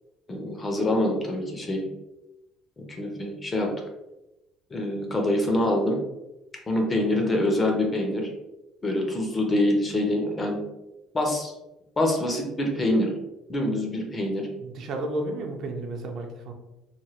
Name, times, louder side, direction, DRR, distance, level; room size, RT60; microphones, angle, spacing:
voice 1, 0.3-1.9 2.8-3.7 4.7-6.0 6.7-8.3 8.8-10.6 11.1-11.5 12.0-13.1 13.5-14.5, left 1 dB, 15° left, 1 dB, 0.4 m, -25 dB
voice 2, 7.0-7.3 14.6-16.5, right 2 dB, 45° right, 3 dB, 0.4 m, -33 dB
3.0 x 2.1 x 2.8 m, 0.95 s
cardioid pair, 165°, 0 cm